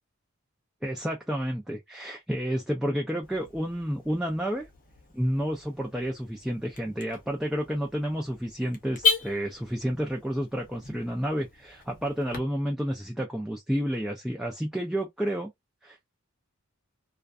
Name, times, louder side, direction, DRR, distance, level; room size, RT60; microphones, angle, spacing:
voice 1, 0.8-4.7 5.1-15.5 15.8-16.1, equal, ahead, 0.4 m, -30 dB
Car / Alarm, 3.2-12.4, left 5 dB, 40° left, 0.8 m, -36 dB
2.5 x 2.2 x 2.4 m
head